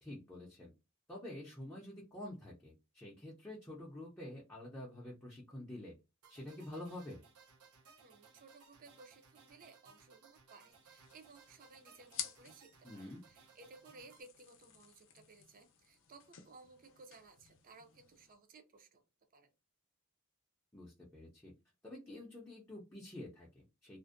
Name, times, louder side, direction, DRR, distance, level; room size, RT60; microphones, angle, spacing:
voice 1, 0.0-0.7 1.1-5.9 6.3-7.2 12.8-13.2 20.7-21.5 21.8-24.0, left 1 dB, 10° left, -5 dB, 0.5 m, -48 dB
sound 1, 6.2-14.2, right 5 dB, 80° right, 0.6 m, -63 dB
voice 2, 8.0-19.0 19.3-19.5, right 3 dB, 40° right, 7 dB, 0.5 m, -59 dB
sound 2, 10.7-18.3, left 9 dB, 60° left, 0.5 m, -52 dB
2.5 x 2.1 x 2.4 m, 0.27 s
head